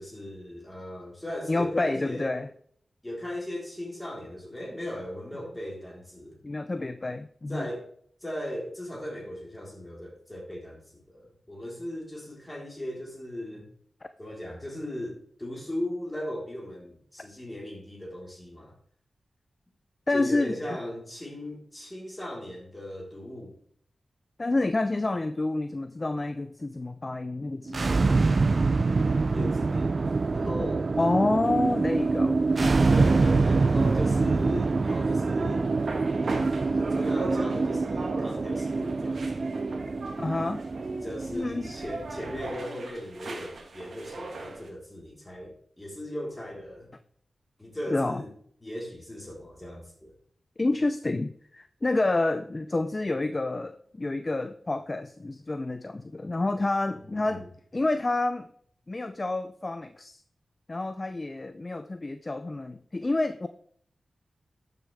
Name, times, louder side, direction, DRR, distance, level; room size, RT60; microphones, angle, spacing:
voice 1, 0.0-2.3 3.0-6.4 7.5-7.9 8.2-13.7 14.2-18.7 20.1-23.5 28.9-30.9 32.9-35.6 36.6-39.5 41.0-46.9 47.6-48.3 48.6-50.1 57.1-57.5, left 1 dB, 15° left, -2 dB, 3.9 m, -37 dB
voice 2, 1.5-2.5 6.4-7.7 20.1-20.8 24.4-28.2 31.0-32.9 40.2-40.6 41.3-41.7 47.9-48.2 50.6-57.5 57.7-58.5 58.9-60.2 60.7-63.5, left 2 dB, 30° left, 10 dB, 0.5 m, -29 dB
sound 1, 27.7-42.6, right 3 dB, 50° right, 0.4 m, -25 dB
sound 2, 31.4-44.7, right 2 dB, 70° right, 1.9 m, -40 dB
12.5 x 6.8 x 3.4 m, 0.62 s
wide cardioid pair, 75°, 0 cm